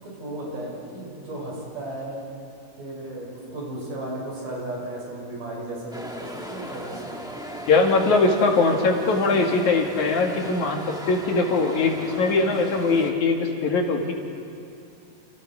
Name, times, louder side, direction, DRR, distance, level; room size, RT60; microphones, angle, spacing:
voice 1, 0.0-2.2 2.8-7.2, right 1 dB, 85° right, -3 dB, 8.1 m, -35 dB
sound 1, 5.9-13.1, equal, 5° right, 0.8 m, -37 dB
voice 2, 7.7-14.1, left 3 dB, 65° left, 1 dB, 3.5 m, -21 dB
30.0 x 30.0 x 4.8 m, 2.5 s
omnidirectional pair, 3.7 m